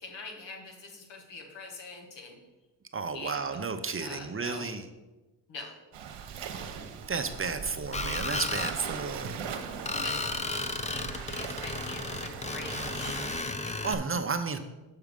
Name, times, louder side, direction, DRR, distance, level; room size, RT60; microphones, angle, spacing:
voice 1, 0.0-2.4 3.1-3.6 4.0-4.7 5.5-5.7 9.9-13.5, left 3 dB, 75° left, 2 dB, 1.7 m, -44 dB
voice 2, 2.9-4.8 7.1-9.4 13.6-14.6, right 4 dB, 30° right, 8 dB, 0.7 m, -33 dB
Waves surf, 5.9-13.4, right 6 dB, 75° right, 1.0 m, -40 dB
Screech, 7.9-8.8 9.9-13.9, left 3 dB, 15° left, 0.6 m, -34 dB
7.4 x 4.7 x 5.2 m, 1.1 s
cardioid pair, 70°, 44 cm